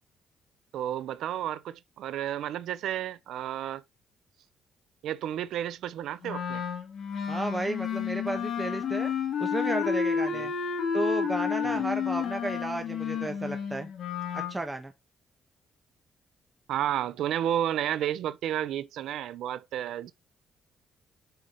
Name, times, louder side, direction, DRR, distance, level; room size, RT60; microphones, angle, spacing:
voice 1, 0.7-3.8 5.0-6.6 10.3-10.4 11.6-11.8 16.7-20.1, right 11 dB, 80° right, 0.6 m, -31 dB
Wind instrument woodwind instrument, 6.2-14.5, left 7 dB, 55° left, 2.6 m, -31 dB
voice 2, 7.3-9.1 9.4-10.5 10.9-13.9 14.3-14.9, right 2 dB, 15° right, 1.3 m, -33 dB
7.9 x 5.1 x 3.1 m
cardioid pair, 90°, 0 cm